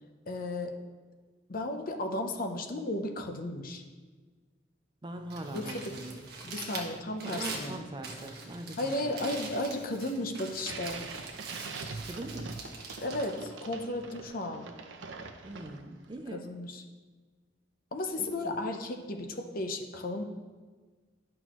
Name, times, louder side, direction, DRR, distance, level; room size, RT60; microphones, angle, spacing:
voice 1, 0.3-0.8 1.5-3.8 5.5-5.9 6.4-7.8 8.8-11.1 13.0-14.7 16.3-16.8 17.9-20.2, left 1 dB, 50° left, 5 dB, 0.7 m, -34 dB
voice 2, 5.0-6.2 7.2-9.2 12.1-12.7 15.4-16.5 18.2-18.6, right 1 dB, 25° right, 6 dB, 0.5 m, -42 dB
Crumpling crinkling, 5.1-14.3, right 3 dB, 55° right, 1.3 m, -43 dB
sound 1, 10.5-16.1, right 4 dB, 85° right, 0.7 m, -43 dB
11.0 x 6.2 x 3.0 m, 1.4 s
head